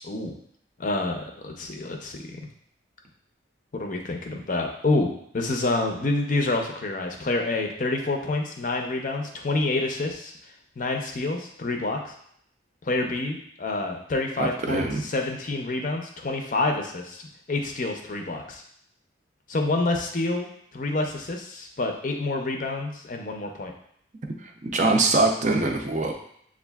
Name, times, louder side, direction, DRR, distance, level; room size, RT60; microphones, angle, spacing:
voice 1, 0.8-2.4 3.8-5.1 5.3-10.3 10.8-12.1 12.8-18.6 19.5-20.5 20.7-23.7, left 2 dB, 40° left, 2 dB, 0.5 m, -28 dB
voice 2, 14.4-15.0 24.4-26.1, right 2 dB, 40° right, 2 dB, 0.4 m, -23 dB
6.9 x 2.4 x 2.3 m, 0.68 s
head